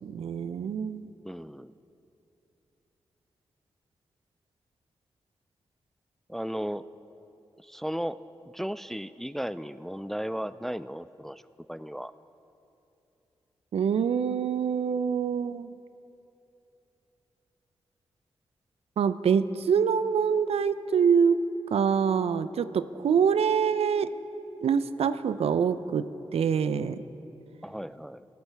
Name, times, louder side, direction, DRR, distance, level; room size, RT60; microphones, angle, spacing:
voice 1, 0.0-1.1 13.7-15.7 19.0-21.4 21.7-24.1 24.6-27.0, right 7 dB, 70° right, 14 dB, 0.5 m, -25 dB
voice 2, 1.2-1.7 6.3-6.9 7.6-8.2 8.5-11.4 11.7-12.1 27.6-28.3, equal, 5° left, 16 dB, 0.3 m, -35 dB
23.0 x 8.1 x 3.4 m, 2.9 s
supercardioid pair, 40°, 11 cm